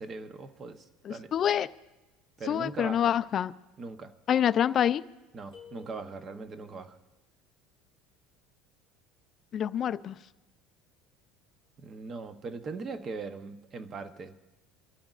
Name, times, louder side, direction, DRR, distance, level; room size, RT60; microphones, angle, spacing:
voice 1, 0.0-1.3 2.4-3.1 3.8-4.1 5.3-7.0 11.8-14.3, right 4 dB, 25° right, 10 dB, 0.8 m, -40 dB
voice 2, 1.1-1.7 2.5-3.5 4.3-5.0 9.5-10.1, left 9 dB, 30° left, 13 dB, 0.4 m, -26 dB
sound 1, 5.5-6.7, left 6 dB, 50° right, 4.1 m, -52 dB
27.0 x 13.0 x 2.4 m, 1.0 s
cardioid pair, 160°, 0 cm